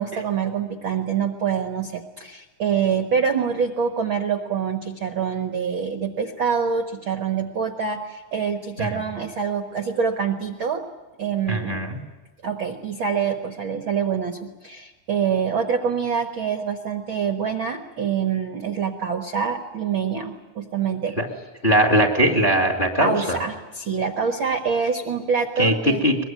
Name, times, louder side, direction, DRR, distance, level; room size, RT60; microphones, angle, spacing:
voice 1, 0.0-10.8 11.2-11.8 12.4-21.2 23.0-26.0, right 6 dB, 55° right, 5 dB, 1.4 m, -25 dB
voice 2, 11.5-12.0 21.2-21.3 21.6-23.4 25.6-26.2, right 1 dB, 20° left, 2 dB, 1.8 m, -20 dB
23.0 x 22.0 x 9.3 m, 1.2 s
omnidirectional pair, 4.0 m